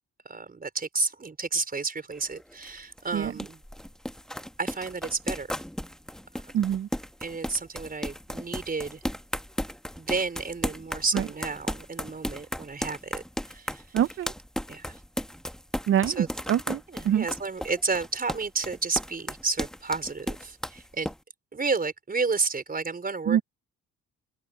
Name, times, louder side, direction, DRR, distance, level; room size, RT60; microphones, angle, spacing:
voice 1, 0.2-3.6 4.6-5.6 7.2-9.0 10.0-14.0 14.7-15.0 16.1-16.3 16.9-21.1 21.5-23.4, right 4 dB, 30° right, 5.1 m, -31 dB
sound 1, 2.1-21.2, equal, ahead, 1.2 m, -35 dB
voice 2, 6.5-6.9 11.1-11.3 13.9-14.3 15.9-17.3 23.3-23.4, right 10 dB, 45° right, 0.5 m, -25 dB
cardioid pair, 90°, 30 cm